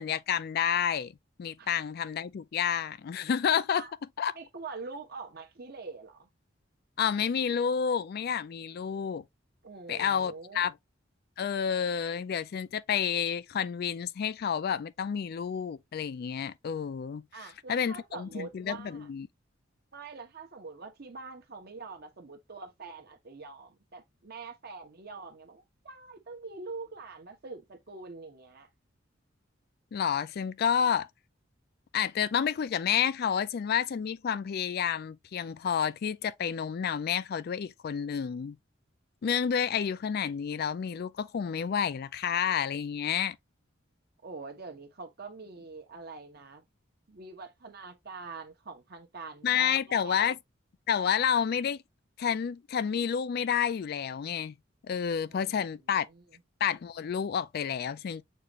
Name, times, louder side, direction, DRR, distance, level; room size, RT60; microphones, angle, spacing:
voice 1, 0.0-3.9 4.2-4.3 7.0-9.2 9.9-10.7 11.4-19.3 29.9-31.1 31.9-38.6 39.2-43.4 49.4-50.4 50.9-51.8 52.2-54.5 54.8-56.1 56.6-58.2, left 8 dB, 50° left, 0.3 m, -30 dB
voice 2, 4.3-6.3 9.6-10.7 17.3-19.1 19.9-28.7 44.2-46.6 47.1-50.2 55.3-55.7 56.1-56.2, right 4 dB, 55° right, 1.1 m, -44 dB
6.7 x 2.5 x 2.9 m
head